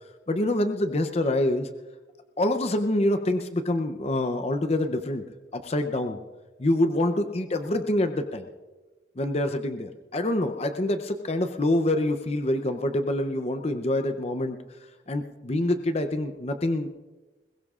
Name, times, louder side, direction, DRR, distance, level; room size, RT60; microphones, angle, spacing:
voice 1, 0.3-1.7 2.4-5.2 5.5-6.2 6.6-8.5 9.2-14.6 15.1-16.9, left 1 dB, 35° left, 7 dB, 0.6 m, -26 dB
21.5 x 21.0 x 2.4 m, 1.2 s
head